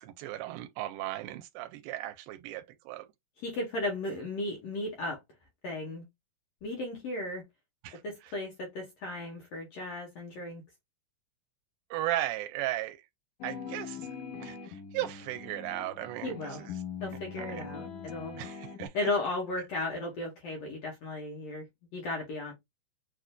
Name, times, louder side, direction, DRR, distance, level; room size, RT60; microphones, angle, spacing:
voice 1, 0.0-3.1 7.8-8.0 11.9-13.0 13.4-14.1 14.4-16.7 17.4-17.7 18.4-18.9, right 14 dB, 85° right, 2.3 m, -36 dB
voice 2, 3.4-5.2 5.6-6.1 6.6-7.4 8.0-10.6 16.2-16.6 17.0-18.4 18.9-21.7 21.9-22.5, left 2 dB, 65° left, 1.7 m, -35 dB
sound 1, 13.4-18.9, left 6 dB, 90° left, 1.3 m, -42 dB
6.5 x 2.5 x 2.2 m
omnidirectional pair, 4.0 m